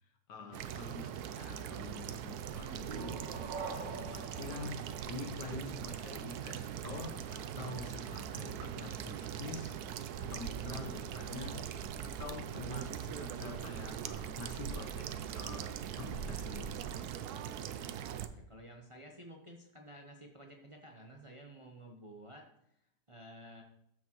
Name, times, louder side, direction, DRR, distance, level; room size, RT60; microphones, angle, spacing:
voice 1, 0.0-4.7 5.1-11.7 12.0-16.8, left 4 dB, 80° left, 5 dB, 1.8 m, -47 dB
sound 1, 0.5-18.3, right 9 dB, 70° right, 1.1 m, -41 dB
sound 2, 2.5-6.1, right 4 dB, 55° right, 1.8 m, -45 dB
voice 2, 17.7-22.8 23.1-23.6, right 1 dB, 25° right, 1 dB, 0.9 m, -53 dB
13.5 x 6.2 x 3.1 m, 0.76 s
omnidirectional pair, 1.8 m